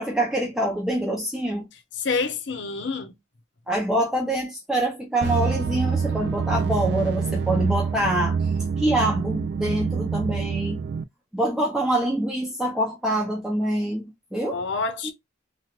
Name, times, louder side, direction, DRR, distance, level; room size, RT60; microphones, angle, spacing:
voice 1, 0.0-1.7 3.7-8.4 8.8-10.8 11.3-14.0 14.3-14.6 15.0-15.1, right 1 dB, 5° right, 0.7 m, -25 dB
voice 2, 2.0-3.1 14.5-15.1, left 4 dB, 70° left, 0.8 m, -27 dB
sound 1, 5.2-11.0, right 5 dB, 60° right, 0.3 m, -26 dB
3.1 x 3.1 x 2.4 m
head